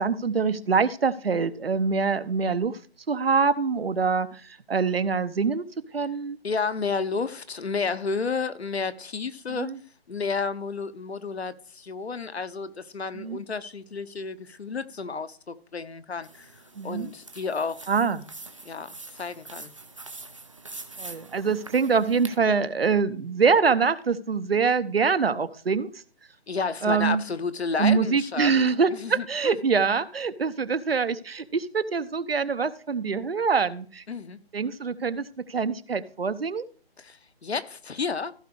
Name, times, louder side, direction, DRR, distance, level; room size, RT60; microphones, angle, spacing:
voice 1, 0.0-2.8 3.1-5.6 5.9-6.4 9.5-9.8 13.1-13.4 16.8-17.1 17.9-18.2 21.0-25.9 26.8-27.2 27.8-34.0 34.5-36.6, right 5 dB, 65° right, 0.9 m, -24 dB
voice 2, 6.4-9.7 10.1-17.9 18.6-19.7 26.5-28.5 28.9-29.6 34.1-34.4 37.0-38.3, left 5 dB, 85° left, 1.1 m, -31 dB
sound 1, 16.2-22.4, right 3 dB, 30° right, 0.8 m, -44 dB
15.0 x 5.2 x 4.7 m
hypercardioid pair, 180°, 31 cm